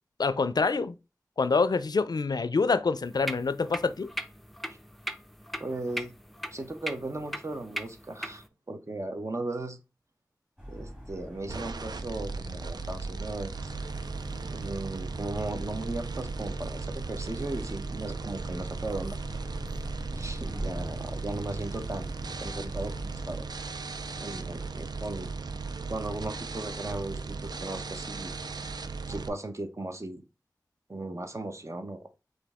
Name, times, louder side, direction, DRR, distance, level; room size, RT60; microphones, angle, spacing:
voice 1, 0.2-1.0 1.4-4.1, left 4 dB, 75° left, 0.4 m, -26 dB
sound 1, 3.0-8.5, right 1 dB, 5° left, 0.5 m, -39 dB
voice 2, 5.6-6.1 6.5-9.8 10.7-13.7 14.4-19.2 20.1-22.1 22.4-23.5 24.2-25.3 25.9-28.3 29.1-30.3 30.9-32.0, right 2 dB, 45° right, 0.8 m, -37 dB
sound 2, 10.6-23.3, equal, 15° right, 2.1 m, -42 dB
sound 3, 11.5-29.3, right 4 dB, 85° right, 0.4 m, -37 dB
5.2 x 2.7 x 3.5 m
wide cardioid pair, 40°, 7 cm